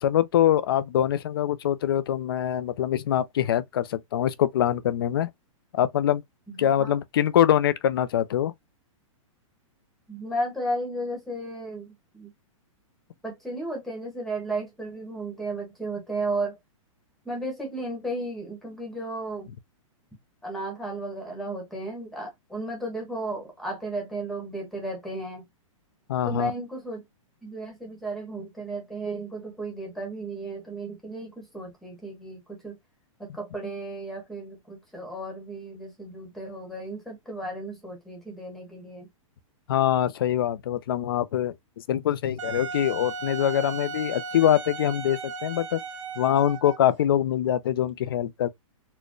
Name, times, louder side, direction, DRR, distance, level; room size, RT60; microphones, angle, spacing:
voice 1, 0.0-5.3 5.7-6.2 6.6-8.5 26.1-26.5 39.7-41.5 41.9-45.8 46.2-48.5, left 11 dB, 45° left, 0.4 m, -24 dB
voice 2, 6.5-7.0 10.1-12.3 13.2-16.6 17.2-19.5 20.4-25.4 26.2-27.0 27.4-32.8 33.2-39.1, right 1 dB, ahead, 1.0 m, -34 dB
Wind instrument woodwind instrument, 42.4-46.9, right 4 dB, 60° right, 1.0 m, -36 dB
4.3 x 2.2 x 3.0 m
hypercardioid pair, 175°, 17 cm